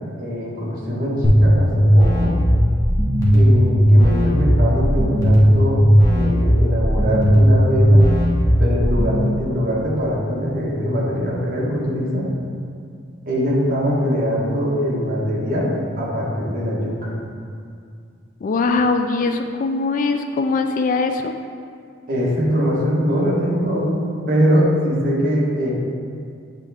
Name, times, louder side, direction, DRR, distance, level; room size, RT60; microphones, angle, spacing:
voice 1, 0.2-2.4 3.3-5.8 6.1-8.1 8.6-12.3 13.3-17.2 22.1-25.7, equal, 50° right, -5 dB, 1.3 m, -22 dB
sound 1, 1.2-9.2, equal, 15° left, 1.0 m, -15 dB
voice 2, 18.4-21.3, left 3 dB, 45° left, 7 dB, 0.3 m, -21 dB
8.2 x 3.3 x 3.5 m, 2.3 s
head